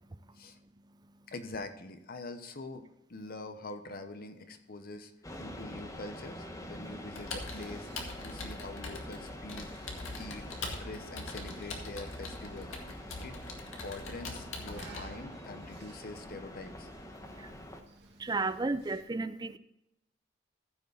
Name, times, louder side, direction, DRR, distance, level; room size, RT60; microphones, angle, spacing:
voice 1, 1.3-5.1 5.4-9.7 10.2-10.5 10.7-12.8 13.2-16.9, left 2 dB, 50° left, 1.0 m, -44 dB
sound 1, 5.2-17.8, left 1 dB, 15° left, 1.1 m, -45 dB
sound 2, 6.8-19.0, right 4 dB, 60° right, 2.2 m, -59 dB
Computer keyboard, 7.2-15.0, left 3 dB, 85° left, 2.0 m, -43 dB
voice 2, 18.2-19.6, right 3 dB, 20° right, 0.5 m, -33 dB
14.5 x 6.1 x 4.0 m
head